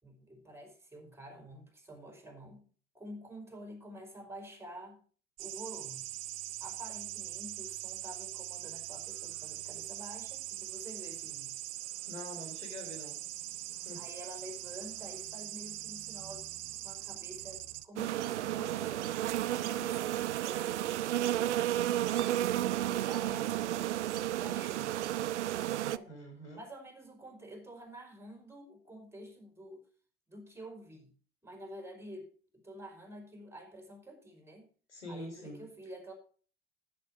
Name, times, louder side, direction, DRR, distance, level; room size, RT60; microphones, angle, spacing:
voice 1, 0.0-2.6 2.9-5.0 5.4-6.1 6.6-11.6 14.0-16.5 16.8-19.1 19.5-21.8 22.2-23.9 24.2-24.9 25.8-26.1 26.5-29.8 30.3-31.1 31.4-34.7 35.1-36.1, right 1 dB, 5° right, 2 dB, 4.8 m, -49 dB
sound 1, 5.4-17.8, right 16 dB, 50° right, 0.9 m, -42 dB
voice 2, 12.1-13.2 13.9-14.0 26.1-26.6 34.9-35.6, left 1 dB, 90° left, 3 dB, 4.2 m, -45 dB
sound 2, 18.0-26.0, right 13 dB, 85° right, 0.5 m, -32 dB
11.0 x 9.5 x 4.7 m, 0.42 s
figure-of-eight pair, 70°, 34 cm